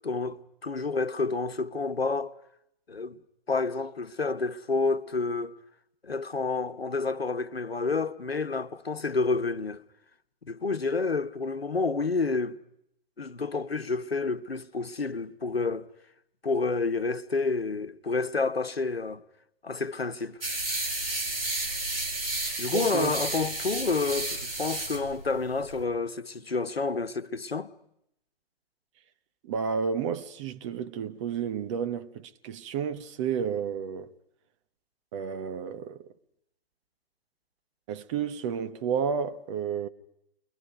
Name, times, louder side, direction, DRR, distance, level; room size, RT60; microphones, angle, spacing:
voice 1, 0.0-2.3 2.9-3.2 3.5-5.5 6.0-9.8 10.4-12.6 13.2-15.9 16.4-19.2 19.6-20.4 22.6-27.7, left 4 dB, 85° left, 1.2 m, -29 dB
sound 1, 20.4-25.8, right 2 dB, 75° right, 4.9 m, -32 dB
voice 2, 22.7-23.1 29.4-34.1 35.1-36.1 37.9-39.9, right 7 dB, 30° right, 1.1 m, -31 dB
29.0 x 22.5 x 5.2 m
figure-of-eight pair, 125°, 30 cm